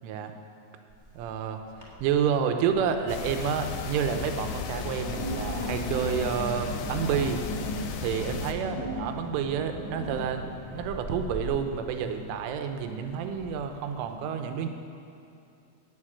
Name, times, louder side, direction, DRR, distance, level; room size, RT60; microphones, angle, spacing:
Wind, 0.9-1.4 1.7-2.2 2.6-14.1, equal, 10° left, 1.2 m, -38 dB
voice 1, 1.2-1.6 2.0-14.7, right 7 dB, 85° right, 6 dB, 3.4 m, -29 dB
sound 1, 3.1-8.5, left 7 dB, 85° left, 3.4 m, -36 dB
16.0 x 6.9 x 8.9 m, 2.6 s
omnidirectional pair, 5.6 m